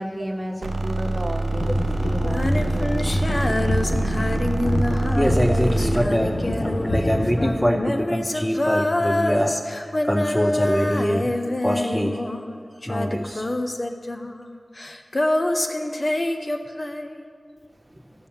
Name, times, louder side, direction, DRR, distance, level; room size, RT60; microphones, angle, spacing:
voice 1, 0.0-4.5 17.9-18.0, equal, 20° right, 1 dB, 1.4 m, -33 dB
sound 1, 0.6-6.2, right 2 dB, 85° right, 0.6 m, -26 dB
sound 2, 1.5-7.6, left 1 dB, 75° left, 1.0 m, -26 dB
Female singing, 2.2-12.6 12.8-17.3, left 1 dB, 45° left, 0.7 m, -26 dB
voice 2, 5.1-11.3 11.6-12.2 12.9-13.5, equal, 5° left, 1 dB, 0.6 m, -24 dB
14.5 x 5.5 x 7.1 m, 2.2 s
wide cardioid pair, 55°, 0 cm